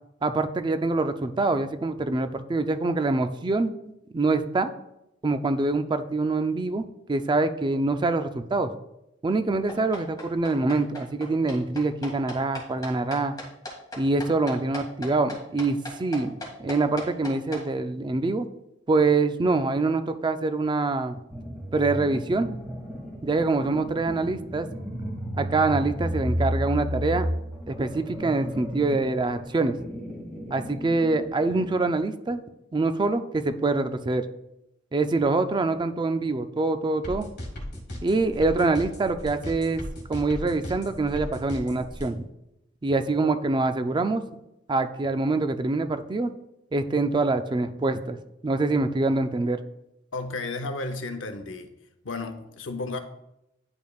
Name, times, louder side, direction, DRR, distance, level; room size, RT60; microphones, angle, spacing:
voice 1, 0.2-3.7 4.1-4.7 5.2-8.7 9.2-13.3 14.0-18.5 18.9-21.2 21.7-22.5 23.2-24.7 25.4-27.3 27.7-29.8 30.5-32.4 32.7-34.3 34.9-37.3 38.0-39.8 40.1-42.2 42.8-44.2 44.7-46.3 46.7-49.6, right 3 dB, 25° right, 9 dB, 0.4 m, -25 dB
sound 1, 9.7-17.6, left 1 dB, 20° left, 2.0 m, -38 dB
sound 2, 21.3-31.8, equal, 5° right, 1.6 m, -33 dB
sound 3, 37.0-42.1, left 1 dB, 60° left, 1.6 m, -37 dB
voice 2, 50.1-51.7 52.0-53.0, left 3 dB, 80° left, 7 dB, 0.7 m, -33 dB
10.5 x 5.1 x 2.3 m, 0.85 s
head